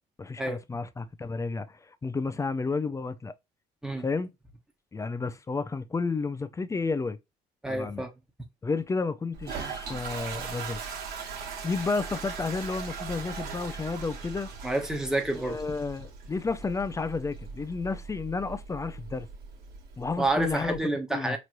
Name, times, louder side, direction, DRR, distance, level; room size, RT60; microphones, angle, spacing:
voice 1, 0.2-3.3 4.0-4.3 4.9-7.2 7.7-8.0 8.6-10.8 11.2-11.4 11.6-14.5 15.4-19.3 20.0-20.8 21.1-21.4, left 4 dB, 20° left, 0.4 m, -31 dB
voice 2, 7.6-8.1 14.6-15.6 20.2-21.4, right 2 dB, 5° right, 1.0 m, -29 dB
Toilet flush, 9.3-20.8, right 5 dB, 65° right, 1.3 m, -40 dB
4.5 x 3.0 x 2.5 m
cardioid pair, 110°, 17 cm